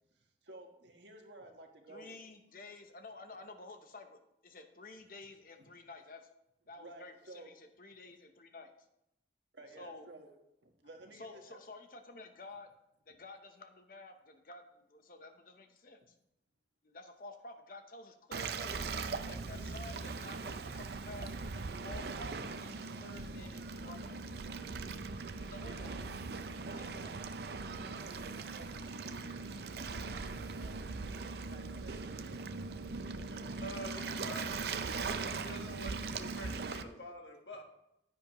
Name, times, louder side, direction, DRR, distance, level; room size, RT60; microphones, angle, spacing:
voice 1, 0.1-2.4 6.8-7.5 9.5-10.3 10.6-11.6 24.6-27.1 27.6-29.5 30.0-34.3 36.0-36.1 36.4-36.9, right 2 dB, 85° right, 3 dB, 1.4 m, -55 dB
voice 2, 1.9-6.3 6.7-8.7 9.8-10.1 11.1-12.7 13.1-16.1 16.8-18.8 19.2-21.3 21.8-24.5 25.4-26.1 26.8-27.1, left 2 dB, 50° left, 6 dB, 0.9 m, -51 dB
Waves surf, 18.3-36.8, right 4 dB, 65° right, 0.5 m, -40 dB
voice 3, 33.5-34.6 35.4-37.6, equal, 80° left, 2 dB, 1.5 m, -47 dB
10.0 x 9.3 x 3.1 m, 0.83 s
head